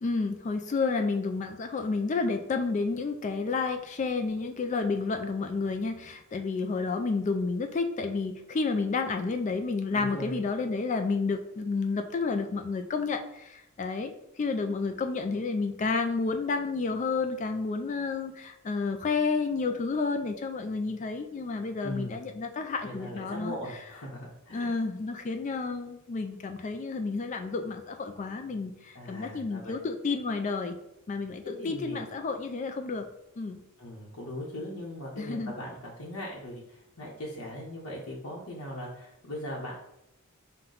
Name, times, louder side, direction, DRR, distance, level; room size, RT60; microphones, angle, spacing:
voice 1, 0.0-23.5 24.5-30.8 31.1-33.1 33.4-33.6 35.2-35.5, left 4 dB, 35° left, 6 dB, 0.3 m, -30 dB
voice 2, 9.9-10.4 21.8-22.2 22.8-24.7 28.9-29.8 31.4-32.0 33.8-39.7, left 1 dB, 85° left, -5 dB, 0.9 m, -39 dB
5.6 x 2.2 x 3.8 m, 0.84 s
head